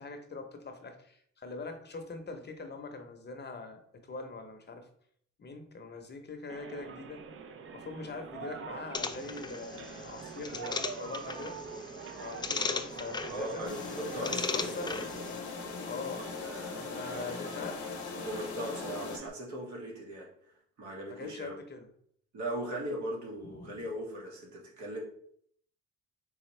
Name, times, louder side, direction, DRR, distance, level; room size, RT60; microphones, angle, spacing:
voice 1, 0.0-4.9 5.4-7.2 7.7-11.6 12.1-14.9 15.8-16.3 16.8-17.8 21.1-21.9 23.4-23.8, left 3 dB, 35° left, 5 dB, 0.7 m, -43 dB
sound 1, 6.5-19.3, right 5 dB, 45° right, 0.5 m, -44 dB
sound 2, 8.9-15.4, left 4 dB, 15° left, 0.3 m, -38 dB
voice 2, 13.3-15.0 18.2-20.3 20.8-21.5 22.3-25.0, right 1 dB, 70° right, -1 dB, 1.5 m, -38 dB
sound 3, 13.7-19.2, left 6 dB, 70° left, 0.8 m, -40 dB
4.3 x 3.4 x 3.2 m, 0.64 s
cardioid pair, 90°, 30 cm